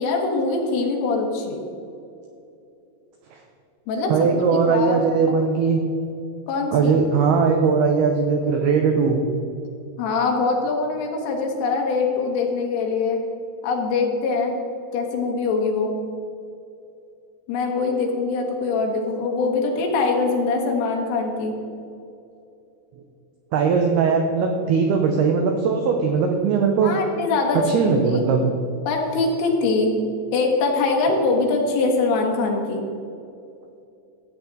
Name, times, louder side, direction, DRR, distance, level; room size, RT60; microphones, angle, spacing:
voice 1, 0.0-1.6 3.9-5.4 6.5-6.9 10.0-13.2 13.6-14.5 14.9-15.9 17.5-21.5 26.8-28.2 28.9-29.9 30.3-32.8, left 3 dB, 80° left, 0 dB, 3.9 m, -23 dB
voice 2, 4.1-5.8 6.7-9.2 23.5-26.9 27.7-28.5, right 5 dB, 85° right, 3 dB, 2.2 m, -19 dB
15.5 x 8.2 x 4.0 m, 2.7 s
omnidirectional pair, 5.7 m